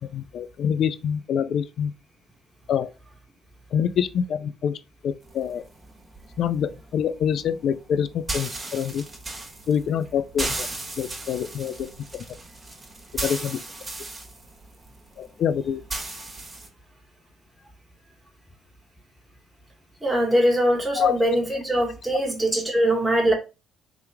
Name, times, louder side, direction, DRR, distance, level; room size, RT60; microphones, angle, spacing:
voice 1, 0.0-1.9 2.7-2.9 3.7-5.6 6.4-9.0 9.7-10.7 11.0-11.9 12.1-12.4 13.2-13.6 15.2-15.8 21.0-21.2 22.1-22.2, left 8 dB, 60° left, 0.4 m, -26 dB
sound 1, 5.2-16.7, right 2 dB, 30° right, 1.2 m, -36 dB
voice 2, 20.0-23.3, right 1 dB, 10° right, 1.4 m, -22 dB
3.4 x 2.9 x 3.4 m
hypercardioid pair, 50°, 0 cm